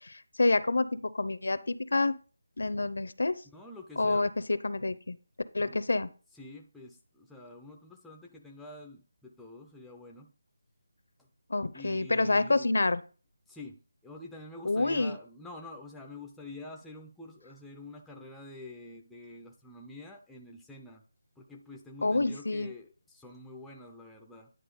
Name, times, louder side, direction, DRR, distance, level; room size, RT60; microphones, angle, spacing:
voice 1, 0.0-2.2 2.6-3.4 4.0-5.2 5.5-6.1 11.5-13.0 14.6-15.2 22.0-22.7, left 2 dB, 70° left, 15 dB, 0.7 m, -28 dB
voice 2, 3.5-4.3 5.6-5.8 6.3-10.3 11.7-12.7 13.5-21.0 21.4-24.5, left 2 dB, ahead, 0 dB, 0.4 m, -47 dB
10.0 x 4.0 x 5.2 m, 0.37 s
figure-of-eight pair, 175°, 0 cm